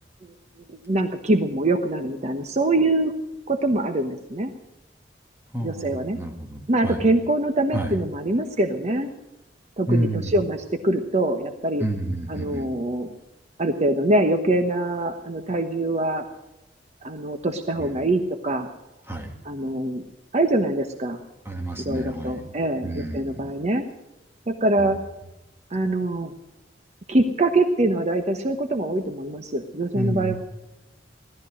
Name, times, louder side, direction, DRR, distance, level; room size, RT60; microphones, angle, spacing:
voice 1, 0.7-3.1 3.5-4.5 5.6-6.2 6.7-9.1 9.8-11.8 12.3-13.1 13.6-16.2 17.0-18.7 19.4-20.0 20.3-21.2 21.8-23.9 24.5-25.0 25.7-26.3 27.1-30.3, right 2 dB, 40° right, 6 dB, 1.1 m, -24 dB
voice 2, 5.5-7.0 7.7-8.0 9.9-10.3 11.8-12.7 17.8-18.1 19.1-19.4 21.4-22.5 22.8-23.5 24.8-24.9 29.9-30.3, right 1 dB, 15° right, 3 dB, 2.1 m, -29 dB
17.5 x 13.0 x 6.3 m, 0.93 s
head